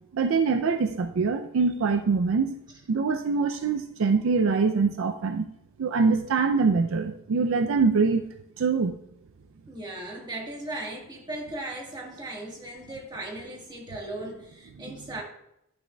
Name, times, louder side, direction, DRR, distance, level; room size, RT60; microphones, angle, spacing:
voice 1, 0.1-2.5 2.9-5.5 5.8-8.2 8.6-9.0, right 4 dB, 65° right, 8 dB, 0.4 m, -24 dB
voice 2, 9.7-15.2, right 2 dB, 20° right, -1 dB, 1.4 m, -37 dB
10.5 x 5.9 x 2.2 m, 0.80 s
head